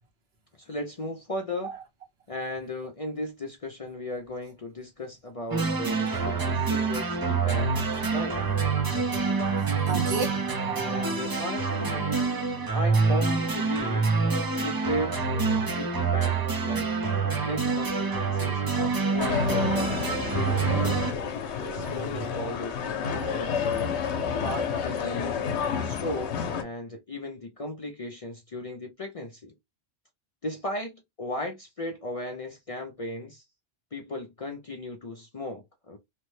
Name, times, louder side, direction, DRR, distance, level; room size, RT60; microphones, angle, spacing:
voice 1, 0.6-1.7 2.3-7.8 8.1-8.4 10.7-12.1 12.7-14.1 14.5-21.3 21.7-24.0 24.4-25.4 25.7-29.5 30.4-33.4 33.9-36.0, left 1 dB, 45° left, 0.5 m, -36 dB
sound 1, 5.5-21.1, right 4 dB, 30° right, 0.4 m, -26 dB
voice 2, 9.6-11.1 21.6-22.3 23.1-23.3, right 4 dB, 70° right, 1.2 m, -34 dB
sound 2, 19.2-26.6, left 7 dB, 90° left, 0.9 m, -30 dB
3.3 x 2.1 x 3.1 m
omnidirectional pair, 1.1 m